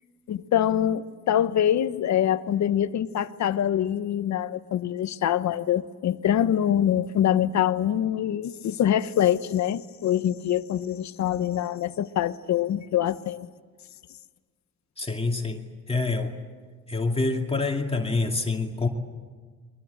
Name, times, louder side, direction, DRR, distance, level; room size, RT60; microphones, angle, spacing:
voice 1, 0.3-13.5, left 10 dB, 65° left, 12 dB, 1.1 m, -24 dB
voice 2, 15.0-16.4 16.9-18.9, left 3 dB, 20° left, 1 dB, 2.6 m, -26 dB
30.0 x 23.0 x 8.1 m, 1.5 s
cardioid pair, 90°, 30 cm